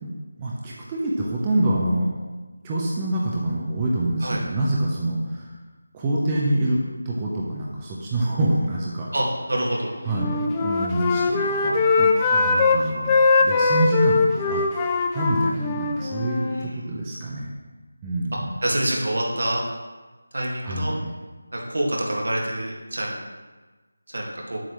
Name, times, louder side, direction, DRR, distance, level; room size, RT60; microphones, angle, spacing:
voice 1, 0.0-2.1 2.6-5.5 5.9-6.8 7.0-9.1 10.0-13.1 13.4-14.6 15.1-17.5 18.0-18.5 20.6-21.1, right 1 dB, 20° right, -4 dB, 0.8 m, -26 dB
voice 2, 9.1-9.9 16.4-16.8 18.6-19.6 20.3-20.9 21.5-23.2 24.1-24.6, right 1 dB, 70° right, -1 dB, 1.9 m, -26 dB
Wind instrument woodwind instrument, 10.1-12.8 13.1-16.7, left 4 dB, 15° left, 0.4 m, -21 dB
7.8 x 7.7 x 3.2 m, 1.2 s
figure-of-eight pair, 165°, 0 cm